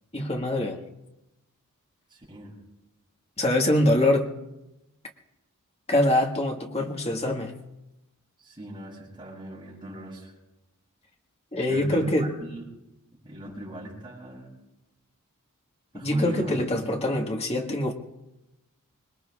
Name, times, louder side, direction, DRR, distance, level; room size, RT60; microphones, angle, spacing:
voice 1, 0.1-0.8 3.4-4.3 5.9-7.6 11.5-12.3 15.9-17.9, left 1 dB, 30° left, 2 dB, 1.7 m, -24 dB
voice 2, 2.1-2.6 8.4-10.3 11.7-12.6 13.2-14.5 15.9-16.5, right 1 dB, 20° right, -5 dB, 7.8 m, -40 dB
25.5 x 21.0 x 2.5 m, 0.94 s
head